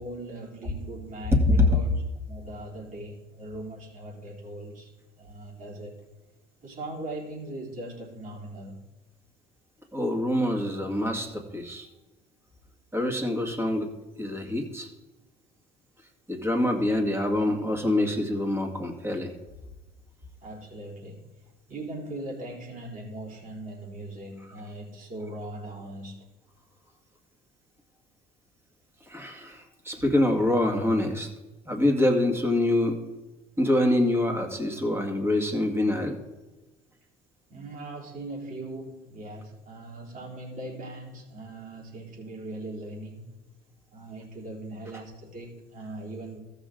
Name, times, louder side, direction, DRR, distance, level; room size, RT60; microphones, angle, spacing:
voice 1, 0.0-4.9 5.2-6.0 6.6-8.9 20.4-21.2 21.7-26.3 37.5-43.3 43.9-46.4, right 1 dB, 50° right, -3 dB, 3.5 m, -40 dB
voice 2, 1.5-1.8 9.9-11.9 12.9-13.9 14.2-14.9 16.3-19.3 29.1-31.3 31.7-33.0 33.6-36.2, left 1 dB, 15° right, 3 dB, 2.0 m, -25 dB
14.0 x 6.3 x 3.9 m, 1.1 s
supercardioid pair, 85°, 17 cm